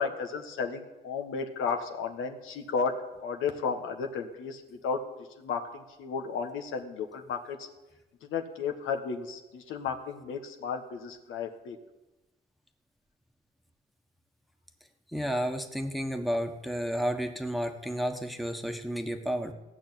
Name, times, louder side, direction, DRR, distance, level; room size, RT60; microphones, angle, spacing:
voice 1, 0.0-2.9 3.2-5.0 5.4-7.7 8.2-11.8, left 5 dB, 85° left, 5 dB, 1.4 m, -33 dB
voice 2, 15.1-19.5, equal, ahead, 5 dB, 1.3 m, -31 dB
16.0 x 6.3 x 9.1 m, 1.1 s
cardioid pair, 90°, 20 cm